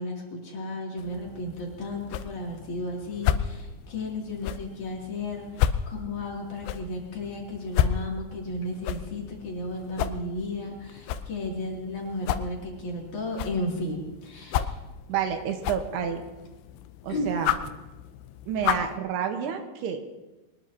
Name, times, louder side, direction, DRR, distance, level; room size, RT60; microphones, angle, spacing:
voice 1, 0.0-14.8 17.1-17.3, left 1 dB, 50° left, -2 dB, 4.0 m, -34 dB
sound 1, 1.0-19.0, left 10 dB, 85° left, 2.8 m, -33 dB
voice 2, 15.1-16.2 17.0-17.5 18.5-20.0, right 8 dB, 80° right, 5 dB, 3.2 m, -29 dB
23.5 x 20.0 x 2.9 m, 1.1 s
omnidirectional pair, 4.8 m